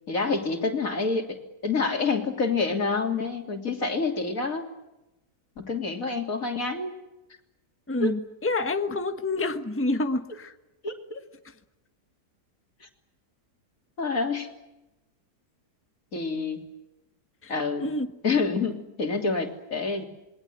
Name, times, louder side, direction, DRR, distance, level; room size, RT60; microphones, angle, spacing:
voice 1, 0.1-4.7 5.6-6.9 8.0-8.1 10.8-11.2 12.8-12.9 14.0-14.5 16.1-16.6 17.5-17.9 18.2-20.0, left 4 dB, 55° left, 3 dB, 3.6 m, -27 dB
voice 2, 7.9-10.5 17.4-17.5 17.8-18.1, left 2 dB, 10° left, 8 dB, 1.3 m, -28 dB
27.0 x 22.0 x 9.4 m, 0.94 s
omnidirectional pair, 1.8 m